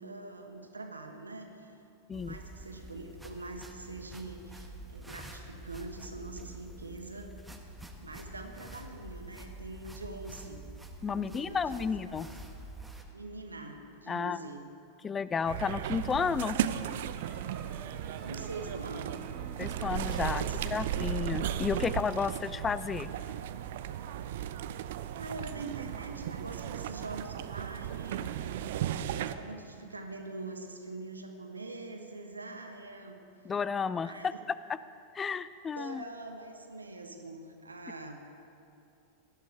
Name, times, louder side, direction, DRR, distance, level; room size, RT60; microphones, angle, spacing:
voice 1, 0.0-1.8 2.1-7.3 8.0-10.6 11.0-12.3 13.1-14.7 18.2-19.2 20.3-20.6 25.1-28.3 29.1-33.2 34.0-34.3 35.8-38.3, right 2 dB, 80° right, 5 dB, 1.3 m, -44 dB
sound 1, 2.1-13.0, right 1 dB, 5° right, 1.3 m, -47 dB
voice 2, 11.0-12.3 14.1-14.4 15.0-16.6 19.6-23.1 33.4-34.3 35.1-36.0, left 6 dB, 20° left, 16 dB, 0.3 m, -32 dB
sound 2, 15.5-29.4, right 10 dB, 55° right, 0.5 m, -35 dB
sound 3, 17.2-23.2, right 4 dB, 30° right, 1.5 m, -51 dB
18.0 x 12.0 x 4.7 m, 2.6 s
figure-of-eight pair, 90°, 0 cm